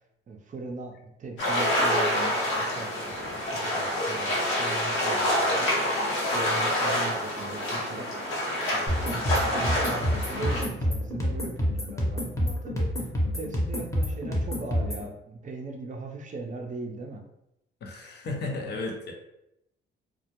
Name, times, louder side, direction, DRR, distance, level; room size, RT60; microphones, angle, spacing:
voice 1, 0.3-3.4 3.8-5.7 6.3-8.1 8.7-12.9 13.3-17.2, right 3 dB, 40° right, 2 dB, 0.4 m, -39 dB
sound 1, 1.4-10.6, left 1 dB, 80° left, 0.8 m, -27 dB
sound 2, 8.9-15.1, equal, 15° left, 0.8 m, -28 dB
voice 2, 17.8-19.1, left 2 dB, 60° left, 1 dB, 0.6 m, -34 dB
2.2 x 2.0 x 2.8 m, 0.83 s
cardioid pair, 90°, 20 cm